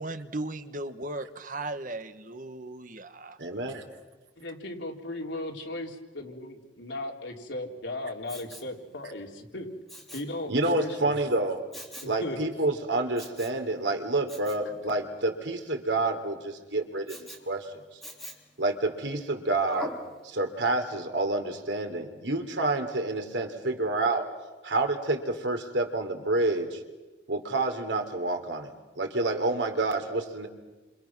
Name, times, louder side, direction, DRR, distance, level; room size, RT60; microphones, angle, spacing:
voice 1, 0.0-3.4, right 2 dB, 45° right, 10 dB, 1.3 m, -36 dB
voice 2, 3.4-3.8 10.5-11.6 12.0-17.8 18.6-19.9 20.2-24.3 24.6-26.8 27.3-30.5, right 2 dB, 80° right, 5 dB, 3.5 m, -28 dB
voice 3, 4.4-9.7 10.1-11.2 12.0-12.4, left 1 dB, 80° left, 1 dB, 4.0 m, -36 dB
Respiratory sounds, 8.3-8.7 9.9-10.3 11.7-12.2 13.2-13.6 14.3-14.6 17.1-17.4 18.0-18.5 19.7-20.1 20.6-20.7, left 1 dB, ahead, 3.3 m, -42 dB
30.0 x 27.5 x 6.1 m, 1.2 s
head